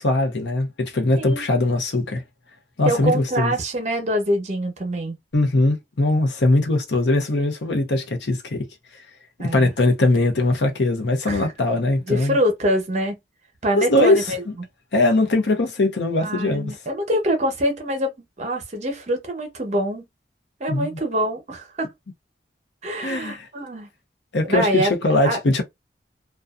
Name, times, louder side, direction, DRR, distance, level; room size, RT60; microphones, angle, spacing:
voice 1, 0.0-2.2 2.8-3.5 5.3-8.7 9.4-12.4 13.8-14.3 14.9-16.7 20.7-21.0 23.0-23.5 24.3-25.6, left 2 dB, 85° left, 0.7 m, -21 dB
voice 2, 2.8-5.2 9.4-9.7 11.2-11.5 12.1-13.2 13.6-14.7 16.2-18.1 18.4-20.0 20.6-21.9 22.8-23.9 24.4-24.9 25.2-25.4, equal, 40° right, 0.8 m, -24 dB
2.5 x 2.3 x 2.3 m
head